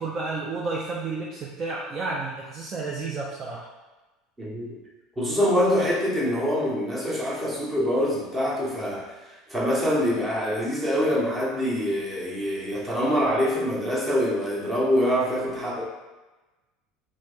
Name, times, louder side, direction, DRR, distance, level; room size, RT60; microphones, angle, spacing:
voice 1, 0.0-3.7, right 3 dB, 30° right, -4 dB, 0.4 m, -31 dB
voice 2, 4.4-4.8 5.2-15.8, equal, 10° right, -5 dB, 1.0 m, -25 dB
3.2 x 2.7 x 3.4 m, 1.1 s
cardioid pair, 145°, 0 cm